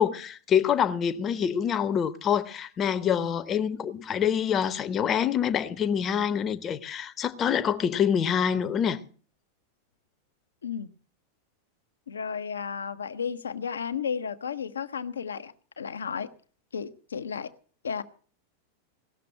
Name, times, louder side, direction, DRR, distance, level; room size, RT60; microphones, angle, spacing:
voice 1, 0.0-9.0, left 8 dB, 25° left, 0.9 m, -26 dB
voice 2, 12.1-16.3 16.7-17.5 17.8-18.0, left 6 dB, 70° left, 0.8 m, -33 dB
17.5 x 6.8 x 7.6 m
figure-of-eight pair, 90°, 0 cm